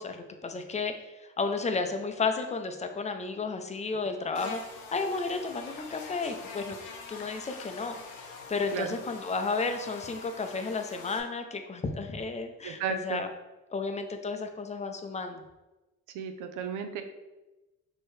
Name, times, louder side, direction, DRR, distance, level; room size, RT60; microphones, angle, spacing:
voice 1, 0.0-4.6 4.9-6.8 7.1-13.3 13.7-15.4, left 4 dB, 25° left, 6 dB, 0.5 m, -33 dB
Buzz, 4.3-11.2, left 4 dB, 85° left, 0.8 m, -44 dB
voice 2, 12.6-13.2 16.1-17.0, right 6 dB, 90° right, 7 dB, 0.5 m, -33 dB
4.5 x 3.0 x 3.2 m, 1.0 s
cardioid pair, 90°, 30 cm